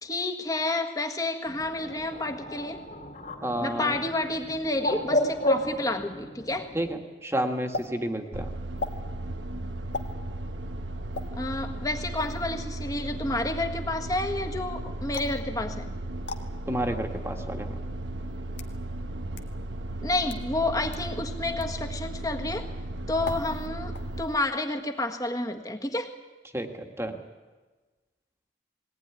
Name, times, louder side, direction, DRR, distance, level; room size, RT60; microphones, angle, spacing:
voice 1, 0.0-2.8 3.6-6.7 11.4-15.9 20.0-22.7 23.1-26.1, left 2 dB, 20° left, 5 dB, 1.6 m, -30 dB
Bird, 1.4-7.0, left 1 dB, 45° left, 3.0 m, -32 dB
voice 2, 3.4-4.0 6.7-8.5 16.7-17.8 26.5-27.2, right 1 dB, 15° right, 4 dB, 1.7 m, -31 dB
sound 1, 7.7-7.9 8.8-9.0 9.9-10.1 11.1-11.3 12.2-12.4 15.1-15.4 16.3-16.4 17.4-17.5 18.3-18.8 19.4-19.5 20.2-20.5 20.9-21.0 21.6-21.8 23.2-23.7 23.9-24.4, left 3 dB, 75° left, 1.6 m, -37 dB
sound 2, 8.3-24.2, right 1 dB, 85° right, 1.2 m, -35 dB
20.5 x 18.5 x 9.8 m, 1.3 s
head